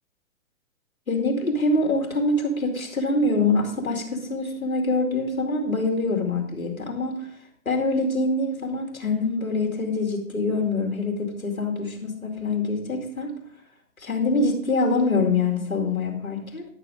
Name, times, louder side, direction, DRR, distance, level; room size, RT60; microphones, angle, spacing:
voice 1, 1.1-7.3 7.6-13.3 14.0-16.7, left 2 dB, 85° left, 1 dB, 2.7 m, -25 dB
11.0 x 7.0 x 5.0 m, 0.64 s
figure-of-eight pair, 125°, 41 cm